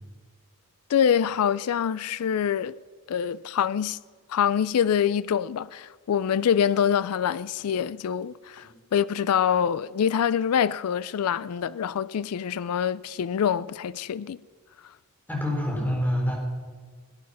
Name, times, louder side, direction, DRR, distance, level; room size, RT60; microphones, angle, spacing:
voice 1, 0.9-2.8 3.1-4.0 4.3-14.4, left 8 dB, 80° left, 0.4 m, -25 dB
voice 2, 15.3-16.3, equal, 10° left, 4.6 m, -26 dB
18.0 x 9.5 x 5.7 m
head